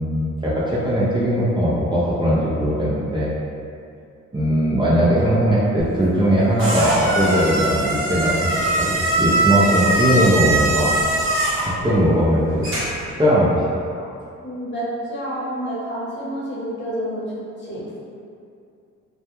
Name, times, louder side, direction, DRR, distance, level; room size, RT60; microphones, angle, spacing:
voice 1, 0.0-3.3 4.3-10.9 11.6-12.7 13.2-13.6 13.9-14.1, equal, 15° right, -9 dB, 0.5 m, -19 dB
sound 1, 5.8-13.1, right 2 dB, 45° right, 0.9 m, -22 dB
voice 2, 14.4-17.2 17.6-17.8, right 1 dB, 40° left, -8 dB, 0.9 m, -28 dB
2.2 x 2.1 x 2.9 m, 2.5 s
cardioid pair, 90°, 30 cm